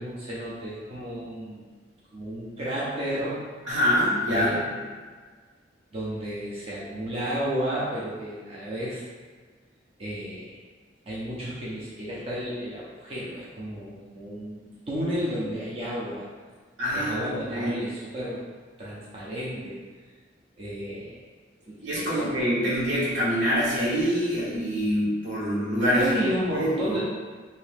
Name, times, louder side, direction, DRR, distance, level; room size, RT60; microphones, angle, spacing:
voice 1, 0.0-1.6 2.1-3.4 4.3-4.8 5.9-9.0 10.0-10.6 11.1-16.3 16.9-18.4 18.8-19.8 20.6-21.2 21.6-22.2 25.9-27.0, equal, 30° right, -8 dB, 0.6 m, -32 dB
voice 2, 3.7-4.5 16.8-17.7 21.8-26.1 26.5-27.0, equal, 80° right, -9 dB, 1.5 m, -25 dB
2.8 x 2.8 x 3.4 m, 1.5 s
head